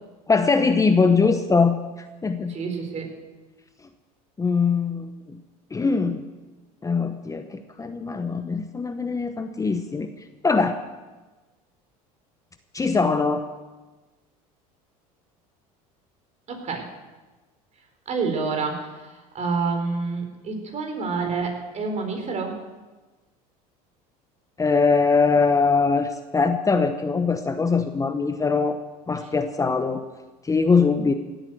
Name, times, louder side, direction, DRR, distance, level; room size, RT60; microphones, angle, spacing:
voice 1, 0.3-1.8 2.2-2.5 4.4-5.4 5.7-6.2 6.8-10.1 10.4-10.8 12.7-13.4 24.6-28.8 29.1-30.0 30.4-31.1, left 4 dB, 20° left, 8 dB, 0.9 m, -22 dB
voice 2, 2.5-3.1 16.5-16.9 18.1-22.5, right 4 dB, 40° right, 4 dB, 4.2 m, -28 dB
17.0 x 9.1 x 7.8 m, 1.2 s
supercardioid pair, 90°, 18 cm